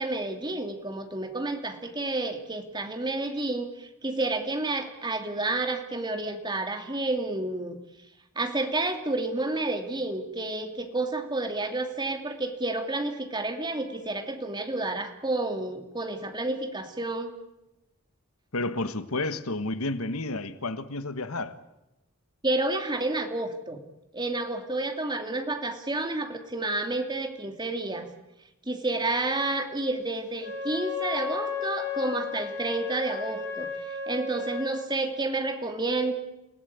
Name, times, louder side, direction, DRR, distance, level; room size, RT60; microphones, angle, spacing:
voice 1, 0.0-7.8 8.4-17.3 22.4-23.8 24.1-28.1 28.7-36.1, right 2 dB, 20° right, 2.4 m, -30 dB
voice 2, 18.5-21.6, left 2 dB, 80° left, 1.4 m, -31 dB
Wind instrument woodwind instrument, 30.3-34.8, left 5 dB, 50° left, 6.7 m, -34 dB
29.0 x 17.5 x 9.5 m
head